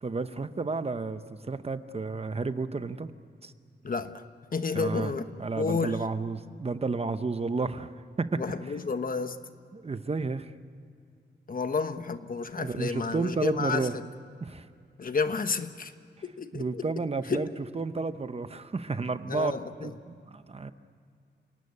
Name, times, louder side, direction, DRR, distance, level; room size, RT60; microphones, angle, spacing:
voice 1, 0.0-3.1 3.4-3.5 4.7-7.9 8.2-8.8 9.7-10.5 12.6-14.0 14.4-14.7 16.5-17.5 17.7-19.5 19.8-20.7, right 4 dB, 35° right, 11 dB, 0.8 m, -32 dB
voice 2, 3.8-4.2 4.5-5.2 5.6-6.0 8.4-9.4 11.5-13.9 15.0-15.9 16.2-16.8 17.3-17.4 19.3-19.9, left 4 dB, 50° left, 9 dB, 1.1 m, -31 dB
29.5 x 18.0 x 9.6 m, 2.3 s
wide cardioid pair, 170°, 19 cm